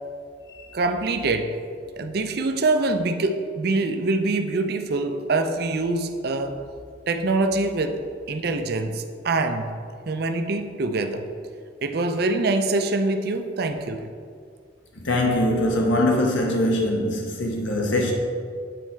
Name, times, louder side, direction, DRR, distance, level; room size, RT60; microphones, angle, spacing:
voice 1, 0.7-1.6 1.9-6.6 7.1-8.0 8.3-9.7 10.1-11.3 11.8-14.1, right 2 dB, 55° right, 7 dB, 0.5 m, -24 dB
voice 2, 15.0-18.1, left 1 dB, 90° left, 0 dB, 1.1 m, -22 dB
9.2 x 4.3 x 4.5 m, 2.2 s
head